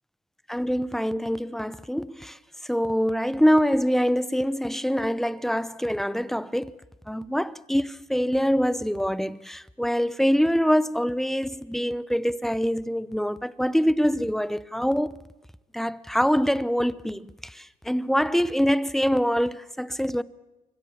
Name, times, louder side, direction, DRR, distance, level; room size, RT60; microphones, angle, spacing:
voice 1, 0.5-2.4 2.6-6.7 7.1-15.2 15.7-20.2, equal, ahead, 0.8 m, -24 dB
25.0 x 24.0 x 7.2 m
cardioid pair, 110°, 17 cm